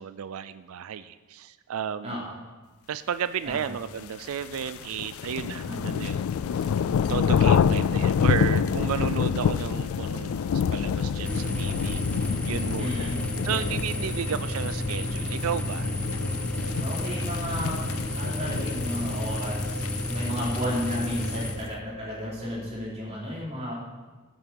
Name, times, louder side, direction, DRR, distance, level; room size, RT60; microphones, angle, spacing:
voice 1, 0.0-2.3 2.9-6.2 6.5-6.7 7.1-13.1 13.4-16.2, right 8 dB, 80° right, 13 dB, 0.4 m, -33 dB
voice 2, 2.0-2.4 3.5-3.7 5.6-6.1 7.6-8.0 12.8-13.2 13.4-13.7 16.8-17.8 18.1-23.7, equal, 30° right, -6 dB, 4.3 m, -34 dB
sound 1, 4.1-21.6, left 7 dB, 75° left, 0.3 m, -28 dB
sound 2, 5.9-22.7, left 1 dB, 35° left, 2.1 m, -45 dB
sound 3, 11.2-21.5, left 1 dB, 5° left, 0.6 m, -31 dB
15.0 x 9.2 x 4.6 m, 1.3 s
head